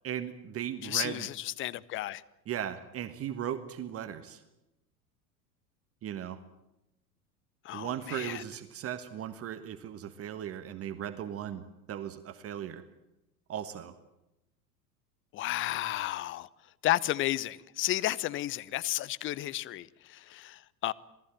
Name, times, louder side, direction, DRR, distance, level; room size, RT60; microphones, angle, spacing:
voice 1, 0.0-1.3 2.5-4.4 6.0-6.4 7.7-11.6 11.9-12.8 13.5-13.9, right 10 dB, 30° right, 1.5 m, -37 dB
voice 2, 0.8-2.2 7.6-8.4 15.3-16.5 16.8-20.9, left 15 dB, 25° left, 0.8 m, -32 dB
27.0 x 18.5 x 9.1 m
figure-of-eight pair, 85°, 48 cm